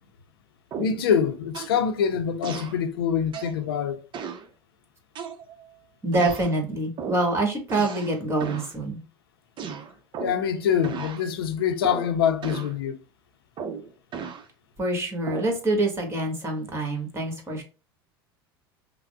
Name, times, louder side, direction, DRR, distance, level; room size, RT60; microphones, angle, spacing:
sound 1, 0.7-1.1 1.5-1.8 2.4-2.8 3.3-3.6 4.1-4.5 5.2-5.7 6.1-6.5 7.0-7.3 7.7-8.2 8.4-8.7 9.6-10.5 10.8-11.2 11.8-12.1 12.4-12.8 13.6-14.5 15.3-15.6, right 6 dB, 40° right, 0.7 m, -35 dB
voice 1, 0.8-4.0 10.2-13.0, left 8 dB, 75° left, 0.6 m, -25 dB
voice 2, 6.0-9.0 14.8-17.6, right 2 dB, 20° right, 1.4 m, -26 dB
5.5 x 2.1 x 2.3 m
hypercardioid pair, 75°, 13 cm